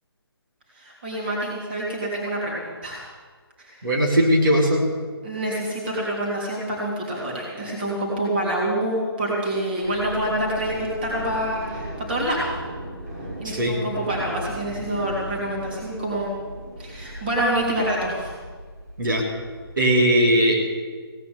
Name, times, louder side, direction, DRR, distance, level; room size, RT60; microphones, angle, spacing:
voice 1, 0.7-3.0 3.6-3.8 5.2-12.5 13.4-16.3 16.8-18.3, right 1 dB, 25° right, -4 dB, 3.3 m, -27 dB
voice 2, 3.8-4.8 13.4-13.7 19.0-19.2 19.8-20.6, equal, 55° right, -1 dB, 3.0 m, -19 dB
sound 1, 9.8-20.0, equal, 40° right, 2.6 m, -37 dB
17.0 x 9.9 x 8.1 m, 1.5 s
hypercardioid pair, 175°, 13 cm